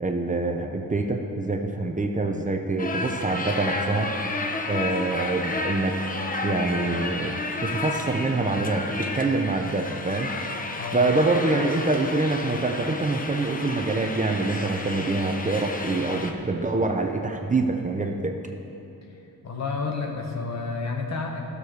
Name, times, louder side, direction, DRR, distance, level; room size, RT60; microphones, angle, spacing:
voice 1, 0.0-4.1 4.7-6.0 6.4-7.4 7.6-10.3 10.9-18.4, right 3 dB, 20° right, 3 dB, 0.8 m, -25 dB
sound 1, 2.8-16.3, left 2 dB, 25° left, 0.9 m, -32 dB
voice 2, 19.1-21.4, left 4 dB, 50° left, 1 dB, 1.6 m, -30 dB
15.0 x 6.9 x 6.4 m, 2.9 s
cardioid pair, 120°, 35 cm